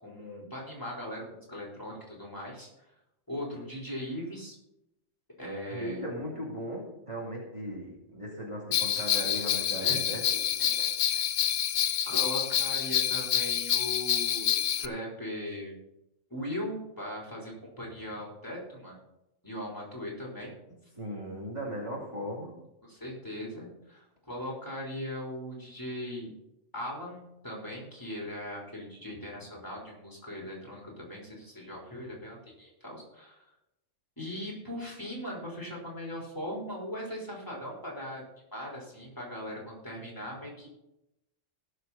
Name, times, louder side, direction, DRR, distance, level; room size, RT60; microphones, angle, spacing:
voice 1, 0.0-2.7 3.3-4.6 5.4-6.1 9.8-10.1 10.7-10.9 11.1-11.2 12.1-15.8 16.3-19.0 19.4-20.5 22.8-26.3 26.7-33.4 34.2-38.2 38.5-40.7, left 1 dB, 15° left, -3 dB, 3.8 m, -39 dB
voice 2, 5.7-10.4 20.9-22.5, equal, 25° right, -5 dB, 2.5 m, -37 dB
Bell, 8.7-14.9, left 9 dB, 85° left, 1.0 m, -27 dB
18.5 x 6.6 x 4.1 m, 0.87 s
omnidirectional pair, 1.3 m